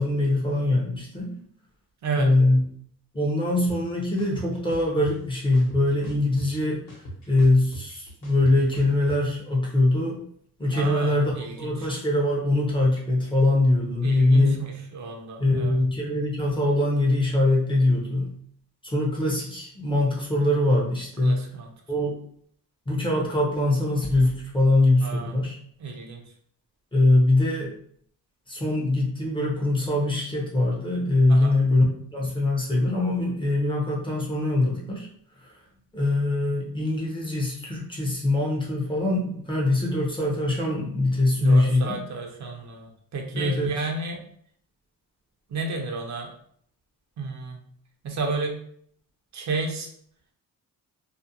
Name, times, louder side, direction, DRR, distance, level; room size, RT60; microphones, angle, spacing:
voice 1, 0.0-1.4 2.2-2.6 3.1-6.8 7.3-10.2 10.6-14.6 15.4-18.3 18.8-21.4 21.9-22.1 22.9-25.6 26.9-27.7 28.5-31.8 32.1-35.1 35.4-35.5 35.9-42.0 43.3-43.7, left 2 dB, 15° left, -3 dB, 0.6 m, -23 dB
sound 1, 3.7-3.8 4.2-5.1 5.5-6.6 6.9-9.2, right 1 dB, 60° left, 1.0 m, -39 dB
voice 2, 10.7-11.9 14.0-15.8 21.2-21.7 25.0-25.4 25.8-26.2 31.3-31.6 41.4-44.2 45.5-46.3 47.2-47.6 48.0-48.6 49.3-49.9, right 3 dB, 55° right, 2 dB, 0.5 m, -32 dB
2.4 x 2.1 x 2.7 m, 0.63 s
cardioid pair, 135°, 34 cm